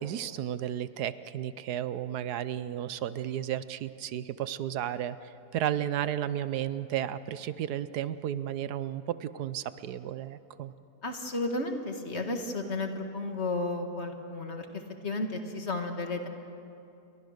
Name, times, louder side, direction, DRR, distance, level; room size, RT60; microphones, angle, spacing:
voice 1, 0.0-10.7, right 11 dB, 80° right, 14 dB, 1.3 m, -33 dB
voice 2, 11.0-14.7 15.0-16.3, left 2 dB, 45° left, 5 dB, 1.9 m, -33 dB
29.0 x 22.5 x 6.6 m, 2.7 s
omnidirectional pair, 1.7 m